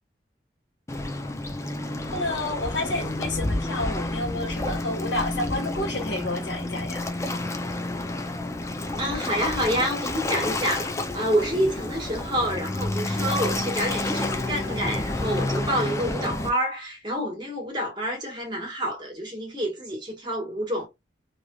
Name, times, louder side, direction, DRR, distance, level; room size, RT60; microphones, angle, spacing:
Waves surf, 0.9-16.5, left 2 dB, 15° left, 0.4 m, -30 dB
voice 1, 2.1-7.1, left 2 dB, 75° left, 1.3 m, -30 dB
voice 2, 9.0-20.9, equal, 25° right, 1.4 m, -28 dB
3.2 x 2.5 x 2.3 m
head